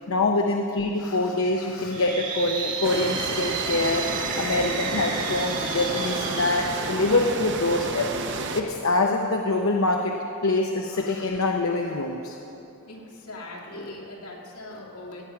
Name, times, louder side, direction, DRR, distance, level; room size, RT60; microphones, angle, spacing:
voice 1, 0.1-4.1 4.4-8.1 8.5-10.1 10.4-12.4, left 2 dB, 70° left, 2 dB, 0.7 m, -25 dB
sound 1, 1.7-7.7, right 4 dB, 35° right, 1.7 m, -32 dB
sound 2, 2.8-8.6, right 3 dB, 55° right, 0.9 m, -31 dB
voice 2, 12.2-12.5 12.8-15.2, left 2 dB, 85° left, -2 dB, 2.3 m, -41 dB
17.0 x 8.9 x 5.8 m, 2.9 s
head